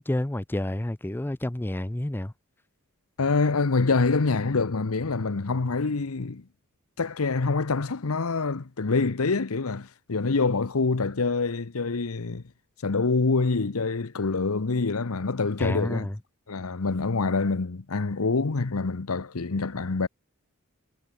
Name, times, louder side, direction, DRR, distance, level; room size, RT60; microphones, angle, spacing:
voice 1, 0.0-2.3 15.6-16.2, left 1 dB, 10° left, 0.6 m, -29 dB
voice 2, 3.2-6.4 7.0-12.4 12.8-16.1 16.5-20.1, left 4 dB, 80° left, 0.9 m, -26 dB
head